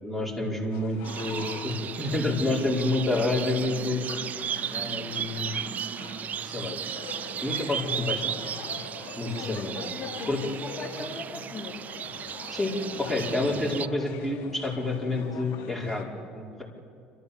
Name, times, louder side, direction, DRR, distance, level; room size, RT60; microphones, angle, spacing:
voice 1, 0.0-4.0 4.7-5.7 6.5-6.8 7.4-8.3 9.2-9.8 10.3-10.4 12.5-12.7 13.0-16.1 16.3-16.6, left 2 dB, ahead, -3 dB, 5.1 m, -29 dB
sound 1, 0.7-16.0, left 7 dB, 70° left, 2.6 m, -44 dB
sound 2, 1.0-13.9, right 9 dB, 45° right, 0.4 m, -35 dB
voice 2, 9.2-11.8, left 4 dB, 35° left, 0 dB, 2.3 m, -40 dB
29.5 x 13.0 x 7.2 m, 2.4 s
supercardioid pair, 80°, 4 cm